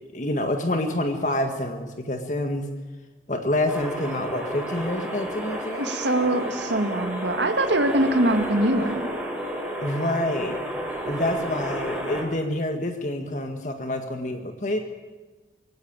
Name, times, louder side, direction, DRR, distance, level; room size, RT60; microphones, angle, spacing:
voice 1, 0.1-2.7 3.3-5.9 8.8-8.9 9.8-10.6 11.1-14.8, left 1 dB, 45° left, 5 dB, 1.8 m, -27 dB
sound 1, 3.7-12.2, right 1 dB, 5° right, 5.2 m, -31 dB
voice 2, 5.8-9.1, right 1 dB, 90° right, 8 dB, 1.9 m, -23 dB
22.5 x 17.0 x 9.0 m, 1.3 s
head